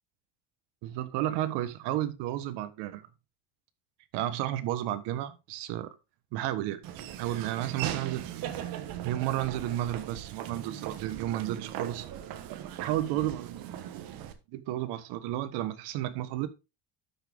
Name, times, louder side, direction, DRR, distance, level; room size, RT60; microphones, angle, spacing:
voice 1, 0.8-3.0 4.1-5.9 6.3-6.8 7.2-8.4 9.0-12.1 12.5-14.1 14.5-16.5, right 13 dB, 70° right, 1.5 m, -32 dB
Laughter / Walk footsteps, 6.8-14.3, right 11 dB, 55° right, 1.4 m, -39 dB
11.5 x 6.3 x 3.6 m
cardioid pair, 165°, 43 cm